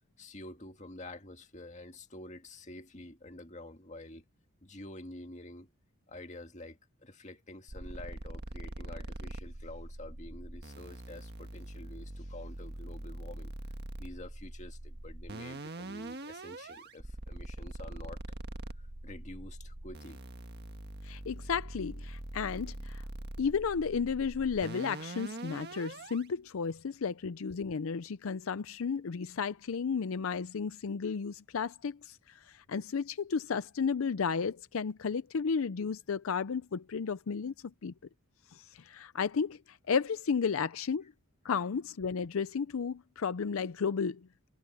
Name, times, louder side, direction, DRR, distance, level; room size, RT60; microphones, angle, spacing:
voice 1, 0.2-4.2 4.6-5.7 6.1-13.5 14.0-18.2 18.7-20.2, left 1 dB, 35° left, 2.0 m, -48 dB
sound 1, 7.7-26.3, right 1 dB, 50° right, 1.6 m, -43 dB
voice 2, 21.0-23.0 23.4-37.5 37.8-37.9 38.5-41.1 41.4-44.2, left 6 dB, 75° left, 0.5 m, -33 dB
head